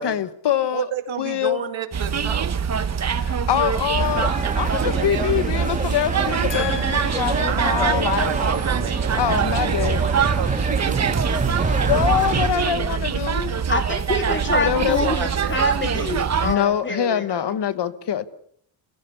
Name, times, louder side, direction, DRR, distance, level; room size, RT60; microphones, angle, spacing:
voice 1, 0.0-0.8 1.2-1.6 3.0-8.4 9.2-10.0 11.9-13.7 14.6-15.1 16.4-18.2, left 10 dB, 60° left, 1.2 m, -24 dB
voice 2, 0.7-2.6 4.7-5.3 7.5-11.9 12.3-12.8 14.3-15.8, right 9 dB, 80° right, 2.5 m, -31 dB
sound 1, 1.9-16.5, right 7 dB, 35° right, 1.0 m, -24 dB
sound 2, 4.0-12.5, right 3 dB, 15° right, 1.5 m, -27 dB
voice 3, 13.7-17.5, left 3 dB, 25° left, 2.8 m, -26 dB
29.5 x 15.5 x 7.0 m
wide cardioid pair, 165°, 46 cm